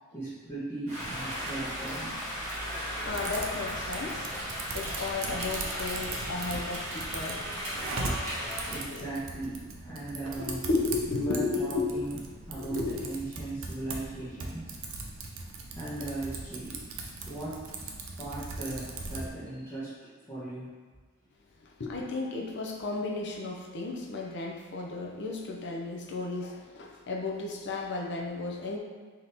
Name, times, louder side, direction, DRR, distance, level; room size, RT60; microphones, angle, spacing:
voice 1, 0.1-2.2 8.7-10.7 11.1-12.2 12.5-14.8 15.7-16.8 17.3-17.9 18.2-20.7, right 2 dB, 10° left, -12 dB, 0.9 m, -38 dB
Rain, 0.9-8.8, equal, 35° right, 1.4 m, -36 dB
voice 2, 3.0-4.3 4.7-7.4 8.9-9.0 10.4-11.9 12.6-13.0 21.8-28.8, left 3 dB, 55° left, 0 dB, 0.6 m, -34 dB
Typing, 3.1-19.3, right 3 dB, 60° right, 0.5 m, -40 dB
3.6 x 2.9 x 3.9 m, 1.4 s
head